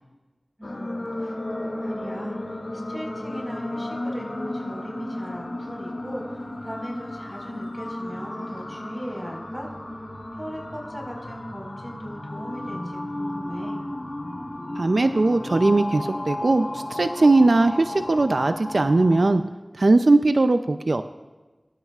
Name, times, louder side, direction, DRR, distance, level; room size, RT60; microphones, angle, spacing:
sound 1, 0.6-19.3, left 1 dB, 80° left, 2.8 m, -34 dB
voice 1, 0.6-9.7 10.4-13.8, equal, 10° right, -1 dB, 4.9 m, -38 dB
voice 2, 14.8-19.4 19.8-21.0, right 2 dB, 85° right, 8 dB, 0.5 m, -19 dB
22.5 x 12.5 x 2.5 m, 1.2 s
wide cardioid pair, 45°, 0 cm